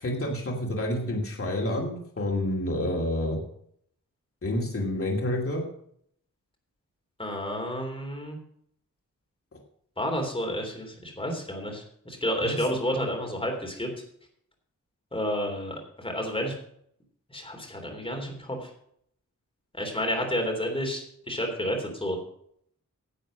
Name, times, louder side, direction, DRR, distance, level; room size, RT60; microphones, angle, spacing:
voice 1, 0.0-3.4 4.4-5.6 12.4-12.6, left 1 dB, 45° left, -1 dB, 2.7 m, -28 dB
voice 2, 7.2-8.4 10.0-13.9 15.1-16.5 17.3-18.7 19.7-22.2, equal, 15° left, 2 dB, 3.3 m, -30 dB
11.0 x 7.9 x 6.4 m, 0.66 s
wide cardioid pair, 140°, 31 cm